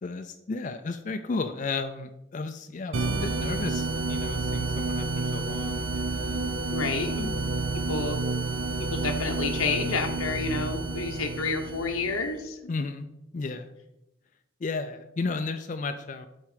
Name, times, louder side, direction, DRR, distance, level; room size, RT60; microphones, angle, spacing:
voice 1, 0.0-6.5 12.7-13.1 13.3-13.7 14.6-16.3, left 3 dB, 35° left, 8 dB, 0.3 m, -34 dB
sound 1, 2.9-12.3, right 3 dB, 70° right, 0.6 m, -30 dB
voice 2, 6.7-7.4 7.9-8.2 8.9-12.7, left 4 dB, 85° left, 3 dB, 0.9 m, -30 dB
8.3 x 4.3 x 4.9 m, 0.89 s
head